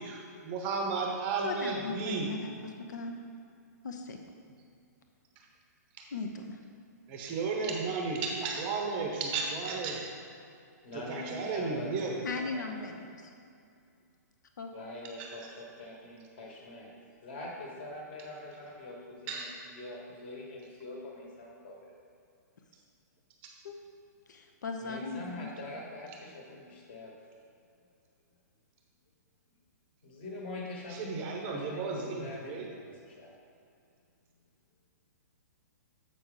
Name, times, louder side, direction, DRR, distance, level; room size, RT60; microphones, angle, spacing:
voice 1, 0.4-2.3 7.1-10.0 11.1-12.2 15.2-15.3 19.3-19.5 30.9-32.7, right 4 dB, 20° right, 1 dB, 0.7 m, -33 dB
voice 2, 1.4-3.2 3.8-4.2 6.1-6.6 12.2-13.3 14.6-14.7 23.6-23.8 24.3-25.5, left 3 dB, 80° left, 4 dB, 0.8 m, -38 dB
voice 3, 10.8-12.9 14.7-16.9 17.2-21.9 24.8-27.2 30.0-33.3, left 2 dB, 35° left, -1 dB, 1.3 m, -44 dB
7.7 x 5.9 x 3.8 m, 2.4 s
hypercardioid pair, 175°, 10 cm